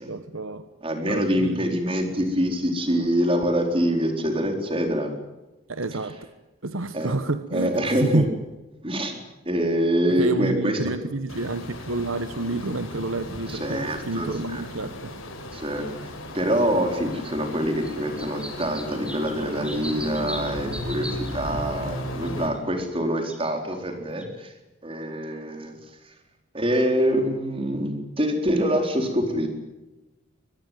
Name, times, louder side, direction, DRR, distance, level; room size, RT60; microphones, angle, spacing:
voice 1, 0.0-0.6 1.1-1.8 5.7-6.2 6.6-8.3 10.1-15.1, right 2 dB, 80° right, 11 dB, 1.3 m, -29 dB
voice 2, 0.8-5.1 6.9-7.1 7.5-8.2 8.8-9.2 9.5-10.8 13.5-14.6 15.5-24.5 24.8-25.8 26.0-26.1 26.5-29.5, equal, 25° right, 5 dB, 4.3 m, -25 dB
sound 1, 11.3-22.5, left 1 dB, 85° left, 6.0 m, -36 dB
sound 2, 13.9-14.0 15.5-15.6 16.7-16.8 17.1-17.2 17.8-21.3 22.3-22.6 23.2-23.8 24.2-24.3, right 1 dB, 5° right, 3.5 m, -38 dB
24.0 x 21.0 x 9.3 m, 1.0 s
head